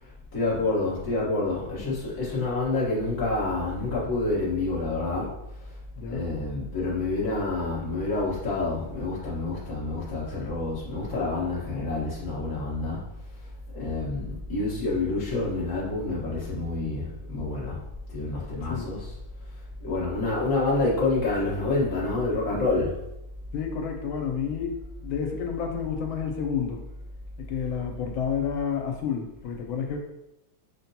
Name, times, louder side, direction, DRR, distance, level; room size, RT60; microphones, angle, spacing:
voice 1, 0.0-5.3 6.1-13.1 13.7-17.8 18.1-19.2 19.8-23.0, left 2 dB, 15° left, -7 dB, 0.7 m, -28 dB
voice 2, 23.5-24.8 25.0-26.8 27.4-30.0, left 7 dB, 85° left, 3 dB, 1.4 m, -30 dB
5.9 x 2.2 x 2.7 m, 0.88 s
omnidirectional pair, 2.2 m